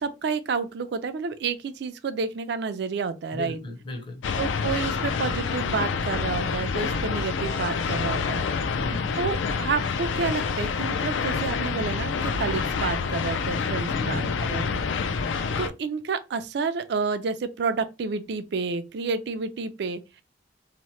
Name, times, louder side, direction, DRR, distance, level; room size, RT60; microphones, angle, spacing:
voice 1, 0.0-3.6 4.4-8.4 9.2-14.8 15.6-20.2, right 5 dB, 65° right, 0.4 m, -30 dB
voice 2, 3.3-4.3 8.6-9.1 13.9-14.4, left 2 dB, 25° left, 0.6 m, -36 dB
sound 1, 4.2-15.7, left 5 dB, 85° left, 0.4 m, -27 dB
2.9 x 2.1 x 3.0 m
head